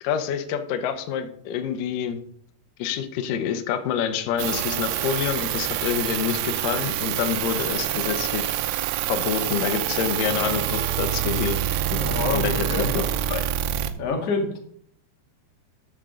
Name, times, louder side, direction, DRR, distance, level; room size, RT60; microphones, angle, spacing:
voice 1, 0.0-2.2 2.8-8.5 9.1-11.6 11.9-12.0 12.3-13.0 13.3-13.4, left 8 dB, 90° left, 7 dB, 1.9 m, -27 dB
sound 1, 4.4-13.9, right 11 dB, 90° right, 3.1 m, -26 dB
voice 2, 12.0-12.9 14.0-14.6, left 3 dB, 50° left, 2 dB, 1.9 m, -26 dB
13.5 x 7.3 x 3.8 m, 0.64 s
omnidirectional pair, 5.3 m